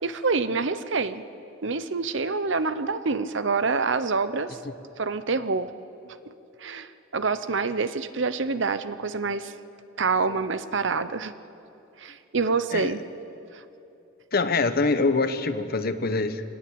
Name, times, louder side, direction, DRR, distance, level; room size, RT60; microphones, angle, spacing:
voice 1, 0.0-1.2 1.6-4.6 5.0-5.7 6.0-6.2 6.6-9.5 10.0-11.3 12.0-13.0 13.5-13.6, right 4 dB, 70° right, 12 dB, 0.9 m, -27 dB
voice 2, 14.3-16.4, left 3 dB, 50° left, 10 dB, 1.1 m, -24 dB
24.5 x 19.0 x 8.7 m, 2.8 s
head